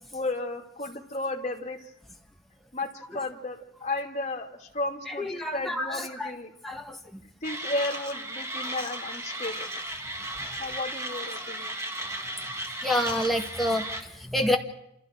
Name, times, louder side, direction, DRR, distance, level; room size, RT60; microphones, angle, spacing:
voice 1, 0.1-1.9 2.7-6.5 7.4-9.7 10.6-11.7, left 2 dB, 35° left, 0 dB, 2.8 m, -33 dB
voice 2, 5.1-6.4 6.6-7.2 12.8-14.6, left 1 dB, ahead, 1 dB, 1.8 m, -28 dB
Mechanisms, 7.4-14.0, right 1 dB, 15° right, 1.8 m, -35 dB
28.5 x 28.0 x 4.7 m, 0.80 s
head